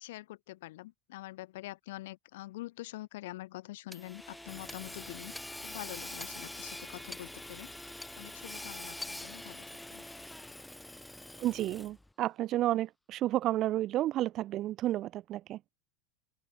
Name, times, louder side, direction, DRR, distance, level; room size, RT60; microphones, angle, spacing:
voice 1, 0.0-5.3 5.6-7.7 8.2-9.6 9.9-10.0, left 17 dB, 75° left, 2.5 m, -45 dB
Hammer / Sawing, 3.9-12.1, left 1 dB, 5° left, 2.5 m, -44 dB
voice 2, 11.4-15.6, right 14 dB, 45° right, 0.7 m, -31 dB
open air
supercardioid pair, 110°, 0 cm